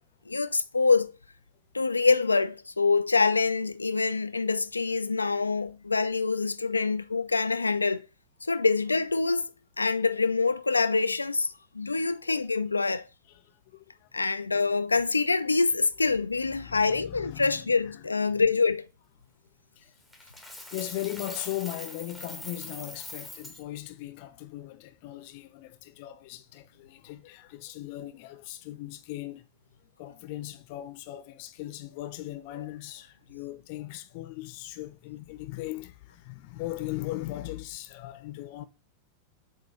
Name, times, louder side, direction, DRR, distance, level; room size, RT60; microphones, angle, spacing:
voice 1, 0.3-1.1 1.7-8.1 8.4-9.4 9.8-11.5 11.7-13.1 14.1-18.8, left 4 dB, 80° left, 0.3 m, -25 dB
voice 2, 13.7-14.1 16.1-18.4 19.8-19.9 20.7-29.5 30.0-38.6, left 15 dB, 45° left, 0.7 m, -39 dB
Coin (dropping), 20.1-23.6, left 1 dB, ahead, 1.0 m, -42 dB
7.9 x 2.6 x 4.5 m
figure-of-eight pair, 90°, 0 cm